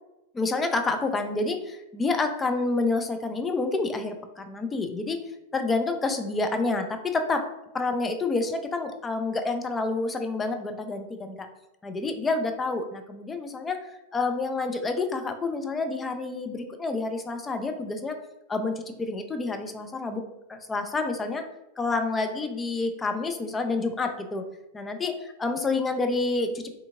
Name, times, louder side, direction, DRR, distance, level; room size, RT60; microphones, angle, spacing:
voice 1, 0.3-5.2 5.5-7.4 7.7-11.5 11.8-13.9 14.1-18.2 18.5-20.2 20.5-21.4 21.8-24.5 24.7-26.7, left 3 dB, 15° left, 6 dB, 0.3 m, -28 dB
3.4 x 2.7 x 2.5 m, 0.92 s
figure-of-eight pair, 90°, 0 cm